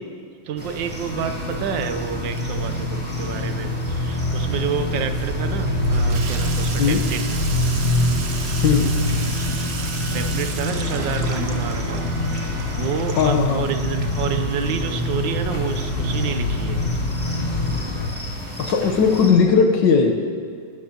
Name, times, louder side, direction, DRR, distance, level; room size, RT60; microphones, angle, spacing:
voice 1, 0.4-7.2 10.1-12.0 12.7-16.8, right 7 dB, 70° right, 8 dB, 1.4 m, -29 dB
sound 1, 0.6-19.3, equal, 5° right, 2.4 m, -35 dB
sound 2, 1.1-18.1, left 2 dB, 40° left, 0.6 m, -25 dB
Water tap faucet / Sink (filling or washing), 1.3-17.4, right 4 dB, 45° right, 0.8 m, -34 dB
voice 2, 8.6-8.9 13.2-13.6 18.6-20.2, left 5 dB, 70° left, 4 dB, 1.7 m, -17 dB
20.5 x 13.0 x 2.9 m, 2.1 s
omnidirectional pair, 2.1 m